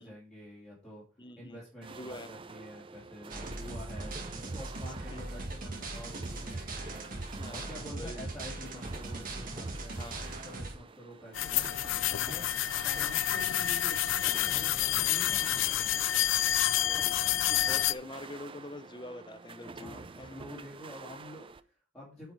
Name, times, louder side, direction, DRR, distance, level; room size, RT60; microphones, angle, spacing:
voice 1, 0.0-1.0 1.4-16.0 19.7-22.3, left 1 dB, 5° left, 2.6 m, -48 dB
voice 2, 1.2-1.6 1.9-2.3 5.1-5.2 7.4-8.3 10.0-10.2 12.9-13.1 15.2-15.4 16.7-20.3, left 2 dB, 25° left, 0.6 m, -46 dB
sound 1, 1.8-21.6, right 4 dB, 25° right, 0.4 m, -49 dB
sound 2, 3.3-10.8, right 2 dB, 45° right, 1.8 m, -39 dB
sound 3, 11.3-17.9, left 12 dB, 75° left, 0.4 m, -28 dB
9.0 x 4.7 x 4.8 m
head